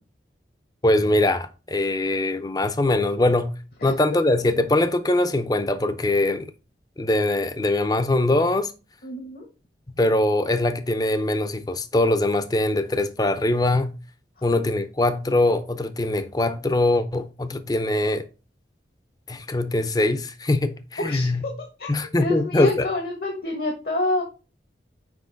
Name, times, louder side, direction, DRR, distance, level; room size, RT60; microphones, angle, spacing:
voice 1, 0.8-3.5 3.8-6.5 7.0-8.7 10.0-13.9 14.4-18.2 19.3-21.4 21.9-22.9, left 2 dB, 20° left, 0.6 m, -22 dB
voice 2, 3.8-4.2 9.0-9.5 21.0-24.2, left 2 dB, 60° left, 1.2 m, -28 dB
6.1 x 4.8 x 3.8 m
head